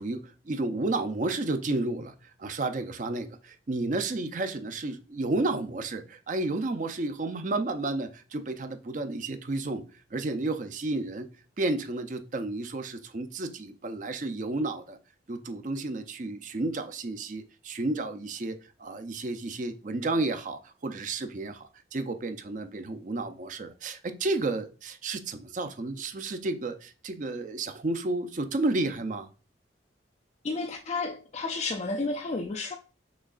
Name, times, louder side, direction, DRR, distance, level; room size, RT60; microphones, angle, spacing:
voice 1, 0.0-11.3 11.6-15.0 15.3-29.3, right 2 dB, 40° right, 0.5 m, -32 dB
voice 2, 30.4-32.8, left 3 dB, 35° left, 0.3 m, -31 dB
6.2 x 3.1 x 2.4 m
head